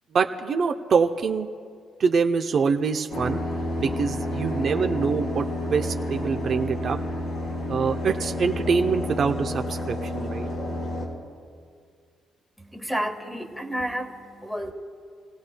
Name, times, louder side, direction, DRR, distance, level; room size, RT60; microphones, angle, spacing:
voice 1, 0.1-1.5 2.0-3.4 3.8-7.0 7.7-10.5, right 5 dB, 55° right, 5 dB, 0.6 m, -24 dB
sound 1, 3.1-11.1, left 1 dB, 80° left, 4.1 m, -30 dB
voice 2, 12.6-14.7, equal, ahead, 5 dB, 1.4 m, -31 dB
28.0 x 17.0 x 2.2 m, 2.1 s
cardioid pair, 90°, 0 cm